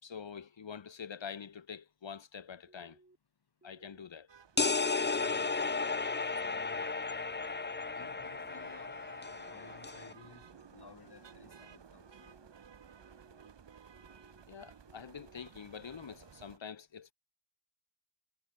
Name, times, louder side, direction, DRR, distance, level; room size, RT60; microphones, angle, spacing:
voice 1, 0.0-3.0 3.6-4.3 5.1-5.3 14.5-17.1, left 7 dB, 75° left, 4.4 m, -46 dB
sound 1, 2.7-3.2 3.6-4.1 4.5-5.0 5.5-6.0 6.4-6.9 7.4-7.8 8.3-8.8 9.2-9.7 10.2-10.7 11.1-11.6 12.1-12.5 13.0-13.5 13.9-14.4 14.9-15.4, right 2 dB, 25° right, 6.6 m, -64 dB
sound 2, 4.3-16.6, right 7 dB, 65° right, 2.4 m, -56 dB
sound 3, 4.6-10.1, left 4 dB, 25° left, 0.9 m, -34 dB
voice 2, 5.0-5.8 6.4-7.0 7.9-9.0 9.3-12.4, left 5 dB, 55° left, 6.4 m, -57 dB
cardioid pair, 50°, 45 cm